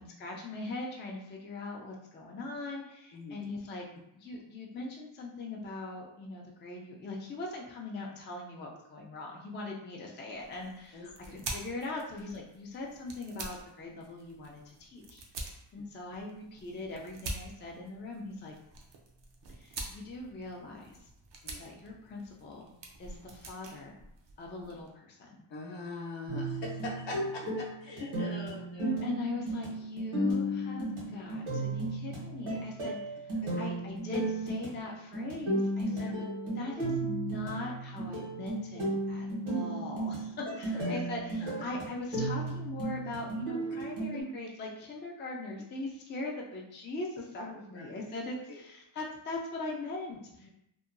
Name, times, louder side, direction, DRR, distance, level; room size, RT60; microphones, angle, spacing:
voice 1, 0.0-3.9 4.1-18.6 19.6-21.0 21.6-22.7 23.0-24.0 24.4-25.5 29.0-36.3 36.5-50.5, left 2 dB, 25° left, -1 dB, 0.3 m, -41 dB
voice 2, 3.1-3.4 10.9-11.1 21.4-21.6 25.5-29.1 30.3-30.4 33.4-33.7 35.9-36.1 36.4-36.5 40.7-41.0 41.4-41.6 44.1-44.2 47.7-47.8 48.5-48.6 50.4-50.5, left 2 dB, 65° left, -2 dB, 0.7 m, -43 dB
sound 1, 10.3-24.9, right 2 dB, 65° right, 0.6 m, -46 dB
sound 2, 26.3-44.2, right 1 dB, 80° right, 1.3 m, -34 dB
2.7 x 2.2 x 2.5 m, 0.79 s
wide cardioid pair, 105°, 48 cm